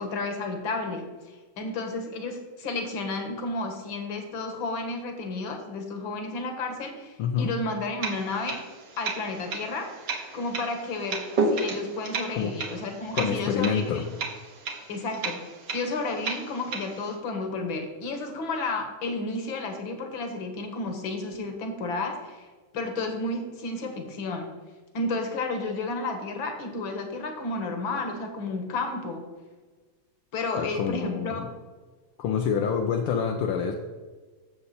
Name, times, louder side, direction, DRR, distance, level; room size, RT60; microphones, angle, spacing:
voice 1, 0.0-8.6 9.0-9.9 10.3-14.0 14.9-15.4 15.7-24.5 24.9-29.2 30.3-31.4, left 3 dB, 65° left, 5 dB, 2.2 m, -32 dB
voice 2, 7.2-7.5 12.4-12.6 13.1-14.1 30.6-31.5 32.2-33.7, left 7 dB, 80° left, 2 dB, 1.7 m, -27 dB
sound 1, 8.0-17.1, right 3 dB, 55° right, 1.9 m, -33 dB
14.5 x 6.9 x 4.3 m, 1.3 s
omnidirectional pair, 2.4 m